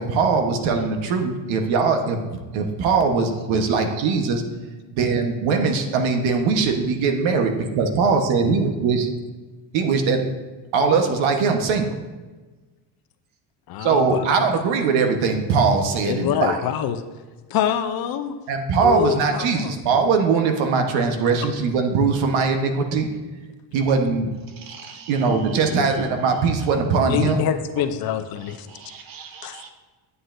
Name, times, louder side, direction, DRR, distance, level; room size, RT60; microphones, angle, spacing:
voice 1, 0.0-2.2 2.5-4.4 4.9-9.1 9.7-10.2 10.7-11.9 13.8-16.6 18.5-23.1 23.7-24.3 25.1-27.4, right 5 dB, 90° right, 5 dB, 1.2 m, -21 dB
voice 2, 13.7-14.5 16.0-17.0 17.5-18.4 18.8-19.8 25.7-25.9 27.1-28.7 29.4-29.6, left 9 dB, 55° left, 9 dB, 0.6 m, -25 dB
voice 3, 24.7-25.1 28.7-29.7, right 6 dB, 50° right, 6 dB, 1.0 m, -41 dB
9.6 x 8.0 x 2.6 m, 1.3 s
cardioid pair, 155°, 45 cm